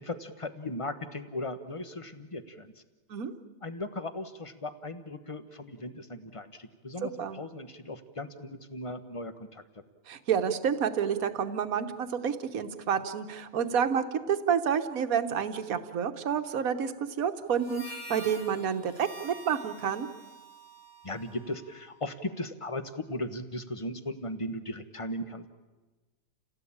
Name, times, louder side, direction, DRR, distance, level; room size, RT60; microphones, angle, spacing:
voice 1, 0.0-2.7 3.6-9.6 21.0-25.5, left 1 dB, 20° left, 10 dB, 1.1 m, -37 dB
voice 2, 7.0-7.4 10.1-20.1, right 7 dB, 60° right, 8 dB, 1.6 m, -29 dB
Harmonica, 17.5-22.1, right 1 dB, 75° left, 4.9 m, -47 dB
29.5 x 17.5 x 8.8 m, 1.3 s
omnidirectional pair, 1.8 m